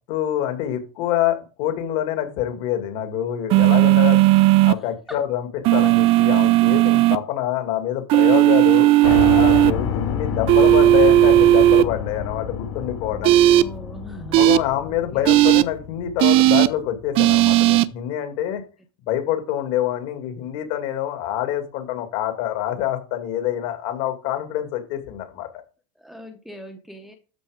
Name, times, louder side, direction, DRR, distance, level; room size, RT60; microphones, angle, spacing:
voice 1, 0.1-4.2 4.6-8.9 9.3-13.4 14.4-18.6 19.1-25.5, left 11 dB, 55° left, 6 dB, 2.3 m, -26 dB
sound 1, 3.5-4.7 5.6-7.2 8.1-9.7 10.5-11.8 13.2-13.6 14.3-14.6 15.3-15.6 16.2-16.7 17.2-17.8, right 15 dB, 40° right, 0.4 m, -15 dB
Piano, 9.0-17.0, left 7 dB, 85° left, 3.7 m, -29 dB
voice 2, 13.0-14.5 15.1-15.4 26.0-27.1, right 1 dB, ahead, 4 dB, 0.8 m, -40 dB
13.0 x 4.5 x 5.1 m, 0.35 s
supercardioid pair, 165°, 15 cm